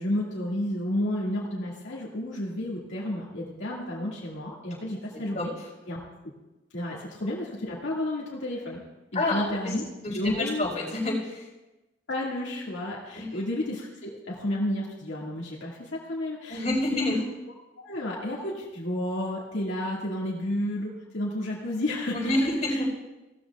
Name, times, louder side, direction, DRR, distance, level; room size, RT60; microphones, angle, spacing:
voice 1, 0.0-5.5 5.9-6.0 6.7-8.8 9.1-9.8 10.1-10.7 12.1-16.6 16.9-17.2 17.8-22.8, left 1 dB, 80° left, -5 dB, 2.0 m, -31 dB
voice 2, 5.3-5.7 9.1-9.7 10.0-11.5 13.1-13.4 16.5-17.2 22.1-22.9, left 1 dB, 35° left, -3 dB, 4.0 m, -28 dB
17.0 x 13.5 x 2.3 m, 1.1 s
head